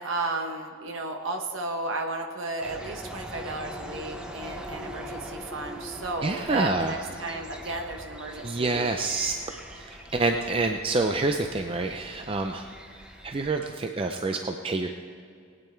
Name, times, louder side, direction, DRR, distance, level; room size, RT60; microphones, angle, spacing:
voice 1, 0.0-8.9, right 2 dB, 80° right, 3 dB, 1.0 m, -33 dB
sound 1, 2.6-13.6, equal, 5° right, 0.8 m, -42 dB
voice 2, 6.2-7.0 8.4-9.4 9.7-12.7 13.2-14.9, right 3 dB, 25° right, 5 dB, 0.4 m, -27 dB
19.0 x 9.3 x 4.5 m, 2.3 s
head